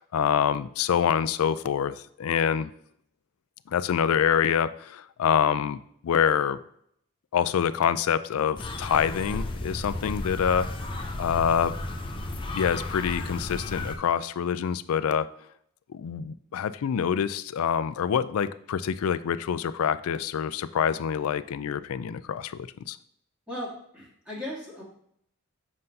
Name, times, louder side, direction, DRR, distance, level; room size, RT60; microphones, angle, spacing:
voice 1, 0.0-2.7 3.7-6.6 7.3-10.7 11.2-11.8 12.5-15.3 15.9-23.0, left 8 dB, 80° left, 14 dB, 0.4 m, -26 dB
sound 1, 8.6-14.0, left 2 dB, 20° left, 0.6 m, -34 dB
voice 2, 23.5-24.8, left 1 dB, 5° right, -7 dB, 1.7 m, -37 dB
7.7 x 5.3 x 2.7 m, 0.69 s
head